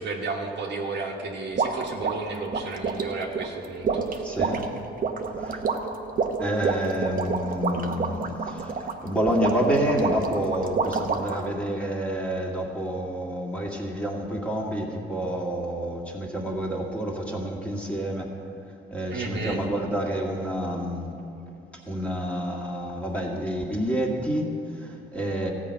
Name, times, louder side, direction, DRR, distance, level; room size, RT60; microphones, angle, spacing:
voice 1, 0.0-4.2 19.1-19.6, right 3 dB, 60° right, 0 dB, 1.4 m, -32 dB
sound 1, 1.6-11.5, right 5 dB, 45° right, 0.9 m, -28 dB
voice 2, 4.2-4.7 5.4-5.6 6.4-18.3 18.9-21.2 21.9-25.5, equal, 5° left, -2 dB, 2.0 m, -28 dB
14.0 x 5.0 x 8.7 m, 2.7 s
cardioid pair, 90°, 20 cm